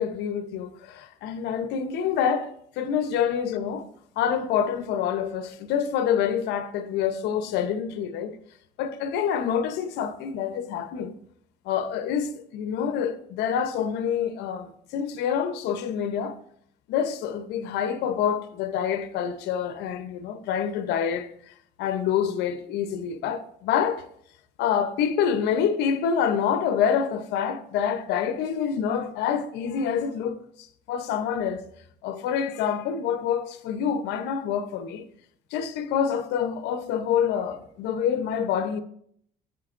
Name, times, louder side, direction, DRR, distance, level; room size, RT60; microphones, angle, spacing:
voice 1, 0.0-3.9 4.2-8.4 8.8-11.1 11.6-16.4 16.9-21.3 21.8-24.1 24.6-30.4 30.9-31.7 32.0-35.0 35.5-38.8, left 8 dB, 85° left, 0.8 m, -27 dB
10.5 x 8.3 x 2.5 m
cardioid pair, 110°, 17 cm